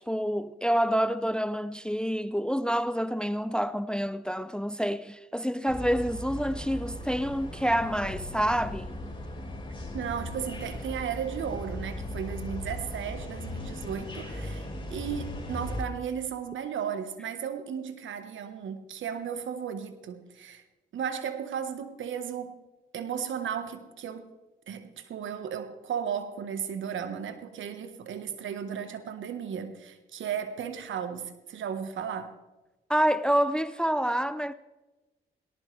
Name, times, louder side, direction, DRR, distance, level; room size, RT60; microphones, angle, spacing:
voice 1, 0.0-8.9 32.9-34.5, equal, 5° left, 0.6 m, -27 dB
sound 1, 5.7-15.8, left 1 dB, 25° left, 5.2 m, -38 dB
voice 2, 9.9-20.6 20.9-22.6 22.9-24.3 24.7-32.3, right 8 dB, 70° right, 1.4 m, -35 dB
18.5 x 18.5 x 3.4 m
supercardioid pair, 50°, 21 cm